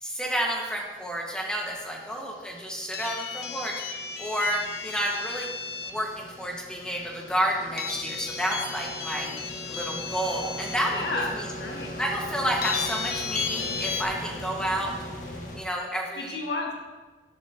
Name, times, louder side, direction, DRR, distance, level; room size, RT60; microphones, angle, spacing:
voice 1, 0.0-3.8 4.2-5.5 5.8-9.3 9.7-11.5 12.0-14.9 15.5-16.4, equal, 5° left, -1 dB, 1.6 m, -30 dB
sound 1, 0.9-15.6, left 1 dB, 45° left, 1.6 m, -41 dB
sound 2, 2.9-6.0 7.8-10.7 11.4-11.5 12.6-14.0, left 5 dB, 60° left, 0.9 m, -34 dB
voice 2, 10.9-11.9 16.2-16.7, left 2 dB, 75° left, -1 dB, 1.9 m, -32 dB
13.0 x 11.0 x 2.9 m, 1.3 s
head